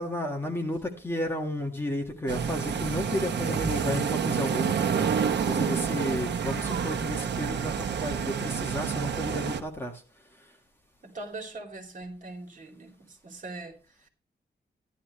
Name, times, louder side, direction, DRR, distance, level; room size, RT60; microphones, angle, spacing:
voice 1, 0.0-10.0, left 1 dB, 15° left, 2 dB, 1.7 m, -33 dB
sound 1, 2.3-9.6, right 7 dB, 70° right, 1.2 m, -28 dB
voice 2, 11.0-14.1, right 2 dB, 45° right, 3 dB, 3.0 m, -41 dB
14.5 x 11.5 x 3.1 m, 0.33 s
wide cardioid pair, 175°, 18 cm